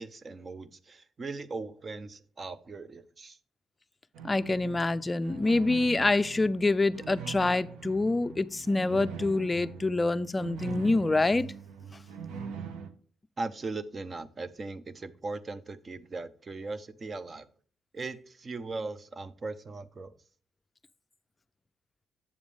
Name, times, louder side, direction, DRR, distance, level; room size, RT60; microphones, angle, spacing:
voice 1, 0.0-3.4 13.4-17.5 17.9-20.1, right 3 dB, 35° right, 0.7 m, -39 dB
sound 1, 4.1-12.9, right 6 dB, 85° right, 0.9 m, -42 dB
voice 2, 4.2-11.5, left 2 dB, 20° left, 0.4 m, -26 dB
8.6 x 7.2 x 3.3 m
cardioid pair, 90°, 0 cm